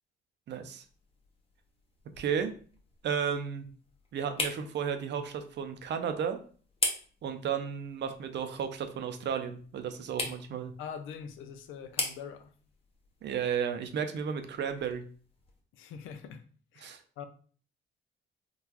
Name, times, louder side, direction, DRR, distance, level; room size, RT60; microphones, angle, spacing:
voice 1, 0.5-0.8 2.2-2.5 3.0-3.7 4.1-6.4 7.2-10.7 13.2-15.0 16.8-17.0, right 7 dB, 60° right, 8 dB, 0.6 m, -33 dB
sound 1, 0.8-15.6, left 2 dB, 30° left, 0.8 m, -42 dB
voice 2, 10.8-12.5 15.8-16.4 16.7-16.9 17.2-17.3, left 7 dB, 90° left, 8 dB, 0.5 m, -43 dB
3.8 x 2.4 x 2.9 m, 0.43 s
cardioid pair, 90°, 20 cm